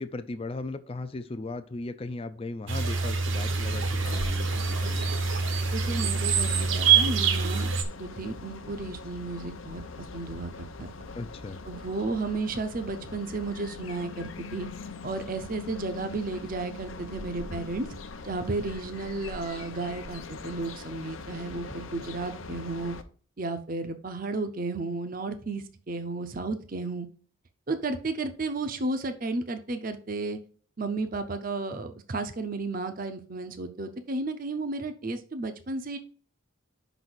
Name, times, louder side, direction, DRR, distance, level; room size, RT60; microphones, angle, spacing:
voice 1, 0.0-5.1 11.2-11.6, left 2 dB, 25° left, 10 dB, 0.4 m, -37 dB
sound 1, 2.7-7.8, right 6 dB, 65° right, 0.9 m, -25 dB
sound 2, 3.3-23.0, left 3 dB, 70° left, 0.6 m, -42 dB
voice 2, 5.7-7.7 8.0-9.8 10.1-10.9 11.7-14.7 15.0-17.9 18.2-23.0 23.4-27.1 27.7-30.4 30.8-36.0, right 3 dB, 40° right, 8 dB, 0.6 m, -33 dB
5.6 x 4.0 x 6.0 m, 0.43 s
head